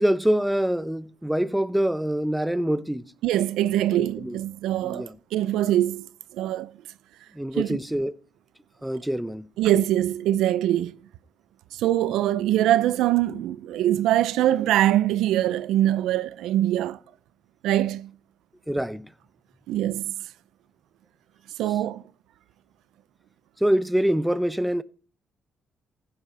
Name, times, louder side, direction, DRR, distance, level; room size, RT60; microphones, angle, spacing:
voice 1, 0.0-3.1 3.9-4.4 4.8-5.2 7.3-8.1 8.8-9.5 18.7-19.1 23.6-24.8, equal, 5° right, 0.7 m, -25 dB
voice 2, 3.2-6.7 7.6-7.8 9.6-11.0 11.7-17.0 17.6-18.1 19.7-20.1 21.6-22.0, right 13 dB, 90° right, 0.6 m, -23 dB
15.5 x 8.8 x 4.3 m
cardioid pair, 90°, 0 cm